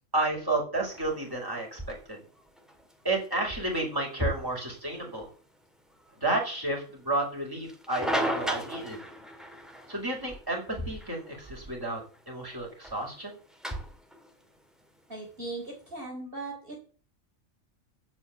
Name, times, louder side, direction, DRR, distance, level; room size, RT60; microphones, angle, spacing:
voice 1, 0.1-2.2 3.0-5.3 6.2-9.0 9.9-12.0 12.3-13.4, right 2 dB, 15° right, -1 dB, 5.7 m, -31 dB
sound 1, 0.8-16.0, equal, ahead, 2.0 m, -39 dB
voice 2, 15.1-16.8, right 2 dB, 40° right, -2 dB, 4.4 m, -38 dB
16.0 x 5.6 x 8.6 m, 0.39 s
omnidirectional pair, 1.4 m